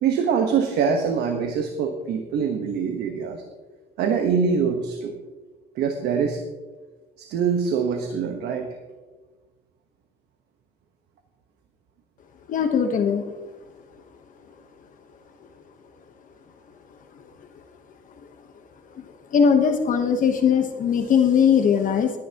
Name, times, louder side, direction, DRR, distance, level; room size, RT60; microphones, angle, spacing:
voice 1, 0.0-3.4 4.0-5.1 5.8-6.4 7.2-8.7, right 6 dB, 75° right, 5 dB, 1.2 m, -24 dB
voice 2, 12.5-13.2 19.3-22.1, left 7 dB, 50° left, 5 dB, 1.1 m, -19 dB
18.5 x 10.5 x 2.9 m, 1.3 s
cardioid pair, 110°, 17 cm